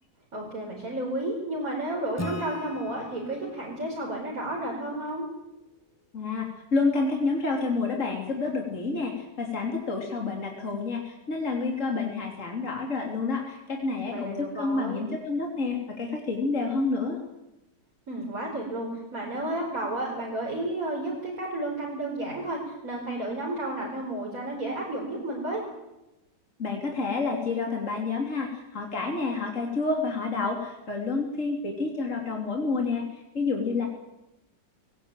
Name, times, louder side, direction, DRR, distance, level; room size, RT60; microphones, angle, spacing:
voice 1, 0.3-5.3 14.0-15.1 18.1-25.6, right 1 dB, 50° right, -2 dB, 5.3 m, -32 dB
Acoustic guitar / Strum, 2.2-5.6, left 1 dB, 15° left, 0.5 m, -41 dB
voice 2, 6.1-17.2 26.6-33.9, left 3 dB, 45° left, 1 dB, 3.5 m, -29 dB
21.5 x 18.5 x 9.1 m, 0.95 s
omnidirectional pair, 1.9 m